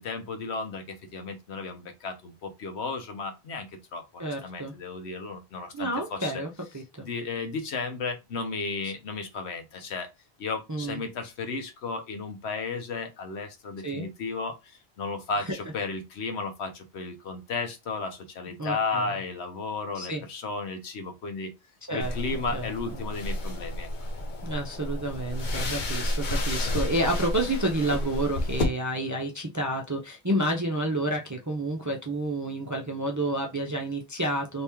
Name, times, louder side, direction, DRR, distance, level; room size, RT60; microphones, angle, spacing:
voice 1, 0.0-6.4 7.0-10.1 10.4-21.5 21.9-23.9, left 4 dB, 85° left, 1.1 m, -34 dB
voice 2, 4.2-4.7 5.7-7.1 10.7-11.0 13.8-14.1 15.4-15.6 18.6-19.1 19.9-20.2 21.9-22.1 22.5-22.7 24.4-34.6, right 1 dB, 30° right, 0.3 m, -30 dB
sound 1, 22.0-28.6, left 1 dB, 50° left, 0.8 m, -31 dB
2.9 x 2.9 x 3.4 m
omnidirectional pair, 1.1 m